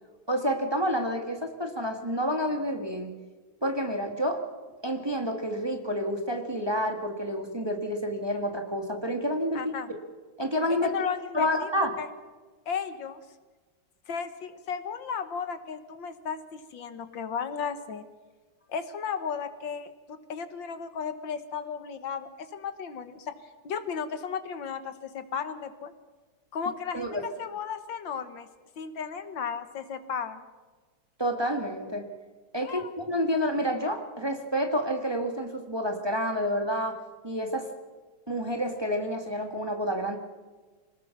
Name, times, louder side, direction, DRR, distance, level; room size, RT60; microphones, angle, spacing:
voice 1, 0.3-3.1 3.6-4.4 4.8-9.7 10.4-10.9 11.3-11.9 26.9-27.2 31.2-32.1 32.5-37.0 37.2-37.7 38.3-40.2, equal, 15° right, 4 dB, 1.9 m, -29 dB
voice 2, 9.5-9.9 10.8-11.7 12.0-12.1 12.7-13.2 14.1-18.1 18.7-23.3 23.6-25.9 26.5-27.1 27.4-28.5 28.8-30.4 32.6-32.9, left 6 dB, 70° left, 10 dB, 1.9 m, -34 dB
26.0 x 19.5 x 6.0 m, 1.3 s
omnidirectional pair, 2.1 m